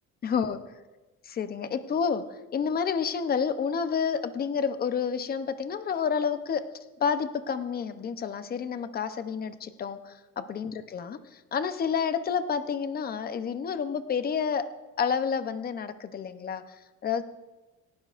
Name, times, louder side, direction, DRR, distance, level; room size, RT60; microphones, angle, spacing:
voice 1, 0.2-0.6 1.2-2.2 2.5-6.7 7.0-14.7 15.0-16.6 17.0-17.2, left 6 dB, 30° left, 10 dB, 0.8 m, -29 dB
28.5 x 11.5 x 2.6 m, 1.2 s
cardioid pair, 155°, 29 cm